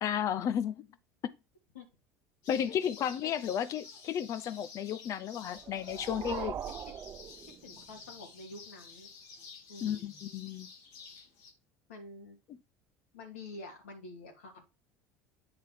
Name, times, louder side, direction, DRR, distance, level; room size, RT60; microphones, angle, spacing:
voice 1, 0.0-0.9 1.2-1.3 2.5-6.5 9.8-10.7, left 9 dB, 50° left, 0.8 m, -33 dB
sound 1, 2.4-11.5, left 5 dB, 65° left, 2.0 m, -51 dB
voice 2, 3.0-3.3 6.2-6.5 7.6-9.1 9.7-10.3 11.9-12.4 13.1-14.7, left 2 dB, 85° left, 2.4 m, -48 dB
sound 2, 5.5-8.1, right 9 dB, 40° right, 0.4 m, -41 dB
8.6 x 3.7 x 4.7 m
hypercardioid pair, 75°, 7 cm